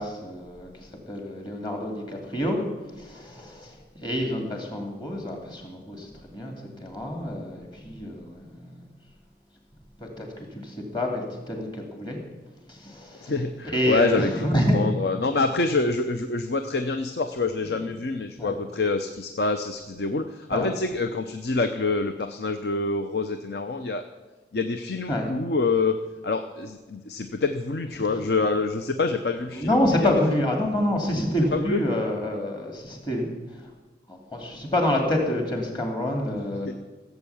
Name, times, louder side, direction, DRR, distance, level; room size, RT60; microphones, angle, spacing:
voice 1, 0.0-2.6 2.9-8.9 10.0-12.2 12.7-13.3 13.6-14.8 17.7-17.8 18.4-18.6 20.5-20.7 25.1-25.3 28.0-28.3 29.5-33.7 34.1-36.7, left 1 dB, 25° left, 2 dB, 2.5 m, -28 dB
voice 2, 13.2-24.0 24.5-25.9 26.2-30.1 31.5-31.8 36.6-36.7, left 3 dB, 65° left, 8 dB, 0.7 m, -26 dB
15.5 x 8.1 x 7.1 m, 1.3 s
head